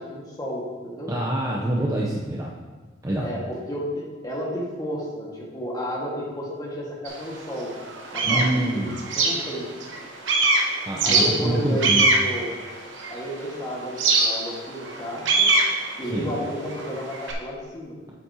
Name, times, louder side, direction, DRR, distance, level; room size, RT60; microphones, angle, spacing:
voice 1, 0.0-1.1 3.2-7.7 8.1-9.7 11.0-12.5 13.1-15.5 16.0-17.9, equal, 20° left, -4 dB, 1.5 m, -32 dB
voice 2, 1.1-2.5 3.0-3.3 8.2-9.0 10.8-12.1 16.1-16.3, right 1 dB, 15° right, -4 dB, 0.6 m, -26 dB
sound 1, 7.1-7.2 7.7-10.0 10.3-13.4 14.0-17.3, right 3 dB, 70° right, 1.0 m, -22 dB
8.4 x 7.3 x 2.8 m, 1.4 s
head